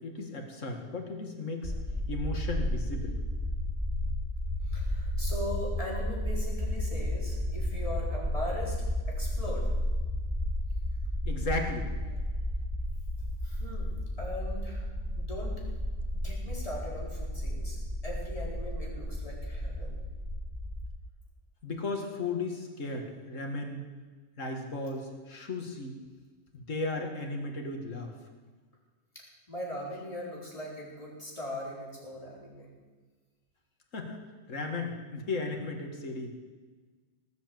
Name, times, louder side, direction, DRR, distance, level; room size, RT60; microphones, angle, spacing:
voice 1, 0.0-1.7 2.1-3.2 11.2-11.9 21.6-23.8 24.4-26.0 26.5-28.1 33.9-36.3, left 3 dB, 85° left, 3 dB, 2.4 m, -35 dB
sound 1, 1.6-20.9, left 1 dB, 10° right, 3.2 m, -33 dB
voice 2, 4.6-8.8 9.1-9.7 13.4-13.9 14.2-14.9 15.2-15.6 16.1-20.0 29.1-32.7, left 1 dB, 25° left, -4 dB, 4.4 m, -40 dB
18.5 x 8.3 x 7.9 m, 1.4 s
omnidirectional pair, 1.3 m